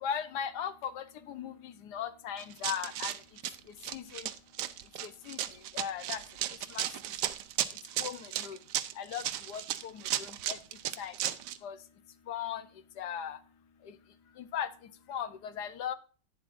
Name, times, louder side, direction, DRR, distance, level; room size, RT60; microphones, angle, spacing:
voice 1, 0.0-3.1 3.9-4.2 5.0-5.4 5.7-6.2 6.7-6.8 8.0-8.6 9.0-10.6 11.0-11.1 11.6-11.8 12.3-12.6 13.0-13.4 14.4-14.7 15.1-15.9, left 8 dB, 65° left, 12 dB, 1.3 m, -38 dB
Run, 2.4-11.6, right 12 dB, 75° right, 1.2 m, -35 dB
11.5 x 9.4 x 2.6 m, 0.38 s
omnidirectional pair, 2.0 m